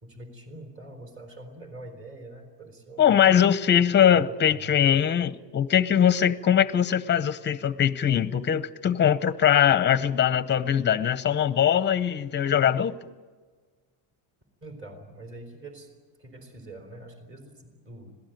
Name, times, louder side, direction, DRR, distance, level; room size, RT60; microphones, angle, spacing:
voice 1, 0.0-3.2 4.1-4.9 14.6-15.9 16.2-18.2, right 1 dB, 30° right, 6 dB, 3.8 m, -44 dB
voice 2, 3.0-13.0, left 9 dB, 25° left, 14 dB, 0.7 m, -21 dB
26.0 x 18.0 x 9.2 m, 1.5 s
cardioid pair, 155°, 44 cm